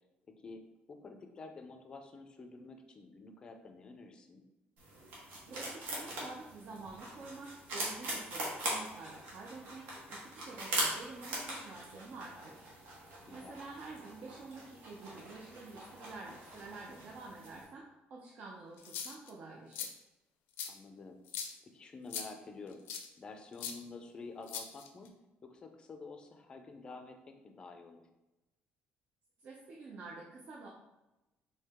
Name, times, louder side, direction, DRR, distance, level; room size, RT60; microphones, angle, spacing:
voice 1, 0.9-4.4 13.3-13.6 20.7-21.2 21.6-25.1 25.4-28.0, left 3 dB, 25° left, 5 dB, 0.4 m, -49 dB
sound 1, 4.8-17.6, right 1 dB, 70° right, 1.4 m, -41 dB
voice 2, 5.5-20.0 29.4-30.7, right 3 dB, 45° right, -2 dB, 0.5 m, -49 dB
sound 2, 18.8-19.3 19.7-19.9 20.6-20.7 21.3-21.5 22.1-22.3 22.9-23.1 23.6-23.7 24.5-25.1, left 7 dB, 85° left, 0.5 m, -40 dB
4.6 x 2.8 x 3.5 m, 1.0 s
cardioid pair, 165°, 4 cm